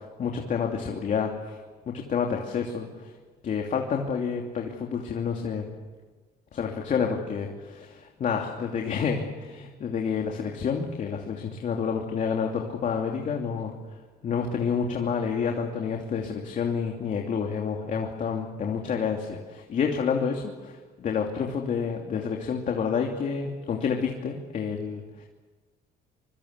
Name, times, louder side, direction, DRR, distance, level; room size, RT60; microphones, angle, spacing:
voice 1, 0.2-1.6 2.1-3.1 3.4-5.7 6.5-13.7 14.2-20.7 21.0-25.3, left 6 dB, 50° left, 1 dB, 3.0 m, -29 dB
25.5 x 23.5 x 8.3 m, 1.3 s
cardioid pair, 110°, 17 cm